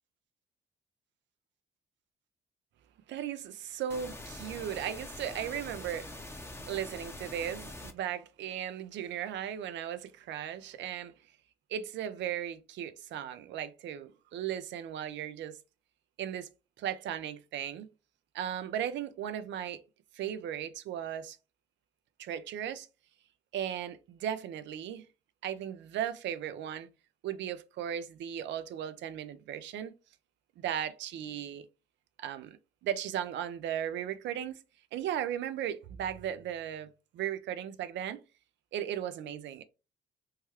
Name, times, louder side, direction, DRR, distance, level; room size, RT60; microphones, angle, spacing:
voice 1, 3.1-6.4 6.6-11.1 11.7-15.6 16.2-16.5 16.8-17.9 18.3-19.8 20.1-21.4 22.2-22.9 23.5-25.1 25.4-26.9 27.2-29.9 30.6-31.7 32.2-34.6 34.9-38.2 38.7-39.6, right 10 dB, 70° right, 0.5 m, -36 dB
sound 1, 3.9-7.9, left 1 dB, 15° left, 0.7 m, -44 dB
3.1 x 2.2 x 3.1 m
hypercardioid pair, 50°, 20 cm